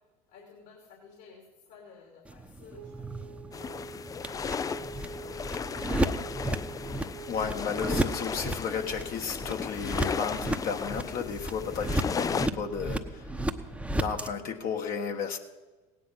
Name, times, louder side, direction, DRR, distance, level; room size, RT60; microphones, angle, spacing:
voice 1, 0.3-6.3, left 5 dB, 65° left, 0 dB, 3.0 m, -55 dB
sound 1, 2.2-14.3, right 1 dB, 5° right, 0.9 m, -34 dB
sound 2, 2.8-8.0, right 5 dB, 90° right, 1.4 m, -47 dB
sound 3, 3.5-12.5, left 6 dB, 20° left, 0.4 m, -35 dB
voice 2, 7.3-13.4 13.9-15.4, left 6 dB, 50° left, 3 dB, 1.4 m, -33 dB
17.0 x 9.5 x 5.7 m, 1.2 s
hypercardioid pair, 80°, 19 cm